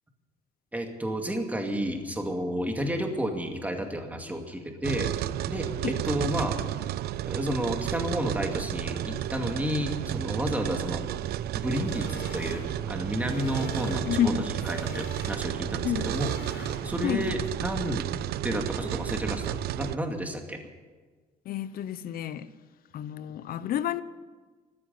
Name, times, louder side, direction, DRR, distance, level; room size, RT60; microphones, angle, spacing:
voice 1, 0.7-5.1 5.5-6.6 7.2-11.1 11.5-14.3 14.7-18.1 18.4-20.6, equal, 10° right, 2.3 m, -31 dB
sound 1, 4.8-20.0, right 12 dB, 70° right, 0.5 m, -32 dB
sound 2, 11.7-17.1, left 2 dB, 80° left, 5.5 m, -44 dB
voice 2, 14.1-14.4 15.8-16.1 17.0-17.3 21.4-22.5 22.9-24.0, left 10 dB, 60° left, 0.8 m, -29 dB
14.0 x 9.8 x 9.6 m
cardioid pair, 110°, 17 cm